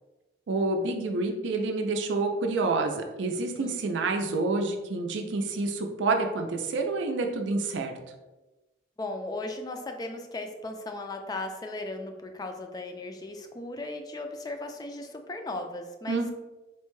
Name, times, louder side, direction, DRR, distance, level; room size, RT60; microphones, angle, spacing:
voice 1, 0.5-7.9 16.1-16.3, right 3 dB, 85° right, 3 dB, 0.4 m, -28 dB
voice 2, 9.0-16.3, left 2 dB, 20° left, 5 dB, 0.3 m, -37 dB
4.4 x 2.1 x 3.0 m, 1.1 s
head